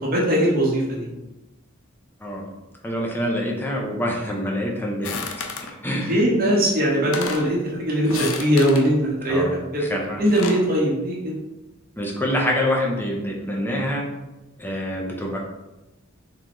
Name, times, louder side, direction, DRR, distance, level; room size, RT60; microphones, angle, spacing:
voice 1, 0.0-1.1 6.0-9.8 10.2-11.4, equal, 45° right, -3 dB, 1.1 m, -21 dB
voice 2, 2.8-5.3 5.8-6.2 9.3-9.5 9.8-10.2 12.0-14.1 14.6-15.4, left 1 dB, 10° left, -2 dB, 0.7 m, -26 dB
sound 1, 5.0-5.7 6.6-6.7 7.0-7.5 8.0-8.9 10.0-10.7, left 5 dB, 75° left, 0.5 m, -31 dB
3.8 x 3.2 x 3.0 m, 1.0 s
head